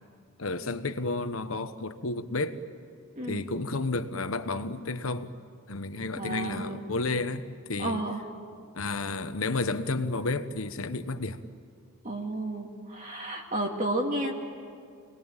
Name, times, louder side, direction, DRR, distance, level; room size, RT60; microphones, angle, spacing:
voice 1, 0.4-2.6 3.2-5.3 5.7-8.0 8.7-11.4, left 3 dB, 80° left, 1.2 m, -31 dB
voice 2, 6.1-6.8 7.8-8.2 12.0-14.3, right 1 dB, 35° right, 2.4 m, -32 dB
28.5 x 20.0 x 9.0 m
head